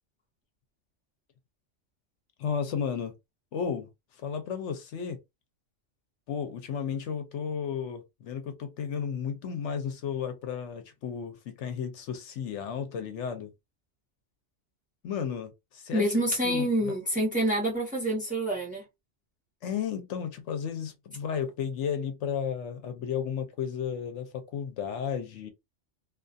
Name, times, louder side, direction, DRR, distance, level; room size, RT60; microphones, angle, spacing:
voice 1, 2.4-3.1 3.5-5.2 6.3-13.5 15.0-16.1 16.4-17.0 19.6-25.5, left 7 dB, 75° left, 0.9 m, -33 dB
voice 2, 15.9-18.8, right 1 dB, 10° right, 0.8 m, -27 dB
2.4 x 2.3 x 2.5 m
omnidirectional pair, 1.3 m